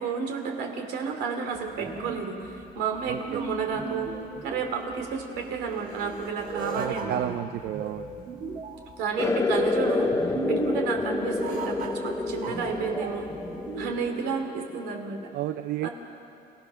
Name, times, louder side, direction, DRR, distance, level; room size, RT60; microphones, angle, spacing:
voice 1, 0.0-4.1 4.4-7.4 9.0-10.1 10.5-13.3 13.7-15.3 15.8-15.9, right 5 dB, 90° right, 4 dB, 2.8 m, -31 dB
sound 1, 1.5-14.1, right 4 dB, 55° right, 4.2 m, -36 dB
voice 2, 3.1-3.4 6.7-8.1 15.3-15.9, right 12 dB, 70° right, 11 dB, 0.5 m, -31 dB
sound 2, 9.2-15.3, left 3 dB, 15° left, 0.7 m, -29 dB
28.0 x 16.0 x 6.2 m, 2.6 s
cardioid pair, 110°, 17 cm